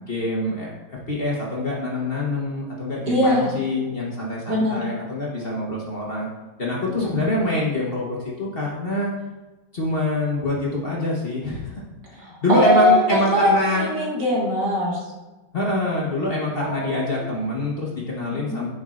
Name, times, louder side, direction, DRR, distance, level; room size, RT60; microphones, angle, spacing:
voice 1, 0.0-6.3 6.6-9.1 9.7-11.8 12.1-13.9 15.5-18.7, left 1 dB, 40° left, -4 dB, 1.0 m, -25 dB
voice 2, 3.1-3.5 4.5-4.8 7.0-7.1 12.2-13.5 13.8-15.0 16.6-17.3 18.3-18.6, left 1 dB, 80° right, -4 dB, 2.4 m, -22 dB
10.0 x 5.0 x 2.4 m, 1.1 s
omnidirectional pair, 1.9 m